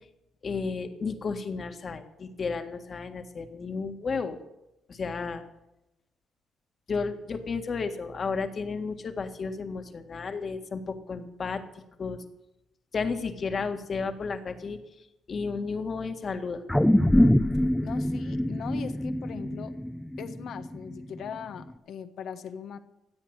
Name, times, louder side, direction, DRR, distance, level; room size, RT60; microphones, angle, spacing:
voice 1, 0.4-4.4 4.9-5.4 6.9-11.6 12.0-12.2 12.9-14.8 15.3-16.6, left 4 dB, 45° left, 7 dB, 1.8 m, -32 dB
sound 1, 16.7-21.2 21.6-21.7, left 1 dB, 5° left, 0.7 m, -24 dB
voice 2, 17.8-19.7 20.2-22.8, left 8 dB, 70° left, 10 dB, 1.2 m, -40 dB
16.0 x 8.4 x 8.1 m, 0.91 s
cardioid pair, 90°, 0 cm